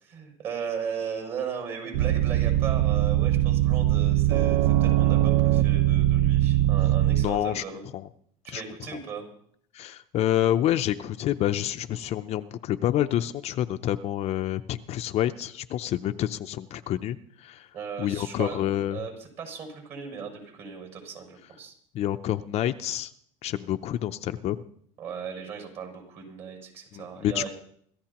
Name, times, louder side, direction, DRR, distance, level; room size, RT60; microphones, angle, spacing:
voice 1, 0.0-7.8 8.4-9.3 17.7-18.6 18.9-19.1 19.4-21.7 25.0-27.5, right 6 dB, 45° right, 2 dB, 6.8 m, -37 dB
sound 1, 1.9-7.3, right 13 dB, 65° right, 0.5 m, -21 dB
voice 2, 7.2-7.6 7.9-8.1 8.5-8.6 9.7-17.7 18.0-19.1 21.9-23.1 23.4-24.6 26.9-27.5, left 12 dB, 40° left, 9 dB, 0.5 m, -28 dB
26.5 x 14.0 x 3.0 m, 0.65 s
cardioid pair, 135°, 16 cm